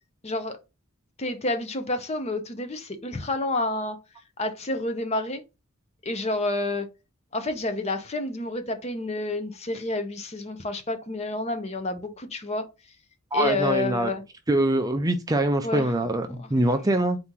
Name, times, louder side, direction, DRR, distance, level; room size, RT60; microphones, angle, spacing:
voice 1, 0.2-0.6 1.2-4.0 4.4-5.4 6.0-6.9 7.3-12.7 13.3-14.2 15.6-15.9 16.4-16.5, left 2 dB, 30° left, 0.6 m, -29 dB
voice 2, 13.3-14.1 14.5-17.2, right 1 dB, 15° right, 0.4 m, -23 dB
4.1 x 2.9 x 3.7 m
head